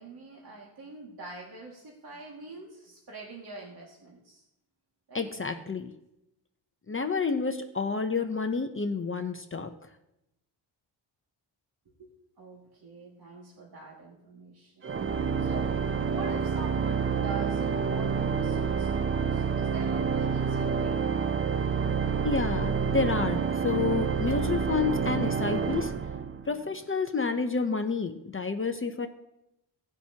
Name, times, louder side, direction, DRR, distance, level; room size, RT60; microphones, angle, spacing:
voice 1, 0.0-4.4 5.1-5.4 12.0-15.0 15.4-21.0, right 3 dB, 50° right, -3 dB, 2.2 m, -44 dB
voice 2, 5.1-5.9 6.9-9.7 22.2-25.9 26.5-29.1, left 4 dB, 25° left, 6 dB, 0.7 m, -29 dB
Organ, 14.8-26.7, right 6 dB, 30° right, 0.4 m, -28 dB
17.5 x 10.0 x 2.9 m, 0.86 s
wide cardioid pair, 125°, 47 cm